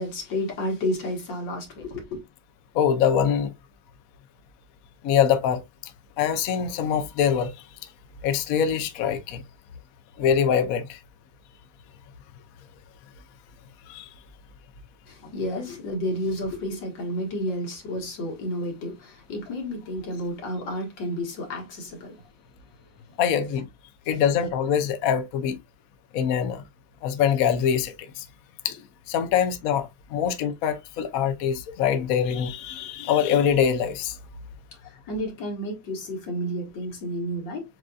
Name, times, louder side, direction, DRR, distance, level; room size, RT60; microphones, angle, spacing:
voice 1, 0.0-2.2 15.1-22.2 35.1-37.6, left 1 dB, 85° left, 2.2 m, -31 dB
voice 2, 2.7-3.5 5.0-5.6 6.2-7.5 8.2-9.4 10.2-11.0 13.9-14.1 23.2-23.7 24.1-25.6 26.1-26.6 27.0-28.2 28.6-34.2, left 8 dB, 65° left, 0.9 m, -24 dB
7.4 x 2.6 x 2.3 m
omnidirectional pair, 1.9 m